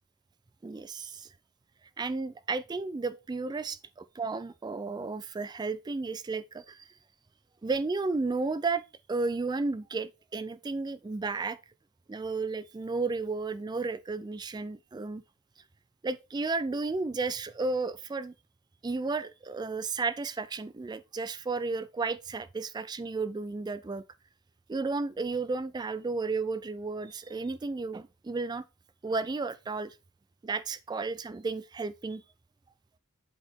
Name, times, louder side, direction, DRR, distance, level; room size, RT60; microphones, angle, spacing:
voice 1, 0.6-1.3 2.0-6.9 7.6-8.8 9.1-11.6 12.1-15.2 16.0-18.3 18.8-24.0 24.7-28.6 29.0-30.0 30.4-32.2, right 3 dB, 20° right, 0.3 m, -33 dB
7.9 x 4.1 x 4.4 m
head